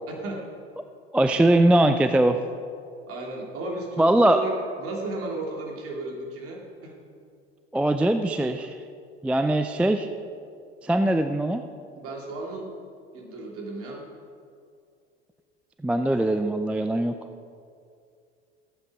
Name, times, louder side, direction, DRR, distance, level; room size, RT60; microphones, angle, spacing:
voice 1, 0.1-0.4 3.1-6.9 11.9-12.7 13.1-14.1, right 2 dB, 45° right, -1 dB, 2.7 m, -34 dB
voice 2, 1.1-2.4 4.0-4.4 7.7-8.7 9.2-10.1 10.8-11.6 15.8-17.1, right 1 dB, 5° right, 8 dB, 0.4 m, -21 dB
14.0 x 8.6 x 4.8 m, 2.3 s
figure-of-eight pair, 70°, 32 cm